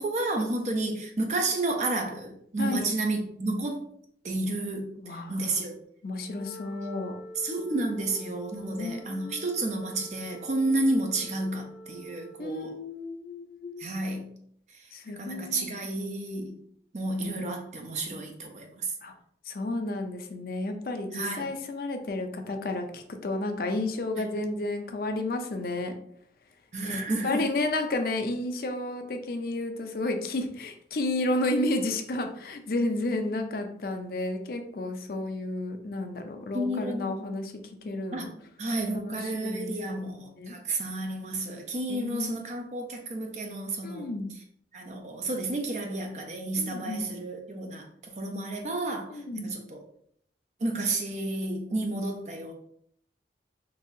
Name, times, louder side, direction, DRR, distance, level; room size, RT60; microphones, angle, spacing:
voice 1, 0.0-3.9 4.2-5.7 7.4-12.7 13.8-14.2 14.7-14.8 15.2-16.5 16.9-18.9 21.1-21.4 26.7-27.4 36.5-37.1 38.1-38.3 38.6-44.1 44.7-47.8 48.2-49.8 50.6-52.5, right 2 dB, 40° right, 3 dB, 0.5 m, -31 dB
voice 2, 2.6-2.9 5.0-5.6 6.0-7.1 8.5-9.6 10.7-10.8 12.4-13.9 14.9-15.8 19.0-19.1 19.4-25.9 26.8-37.5 37.8-38.3 38.9-40.6 41.9-42.3 43.8-44.3 46.6-47.0 49.1-49.5, left 2 dB, 55° left, 5 dB, 0.4 m, -32 dB
Wind instrument woodwind instrument, 6.2-12.5, left 1 dB, 75° left, 0.9 m, -46 dB
3.9 x 2.7 x 2.6 m, 0.67 s
head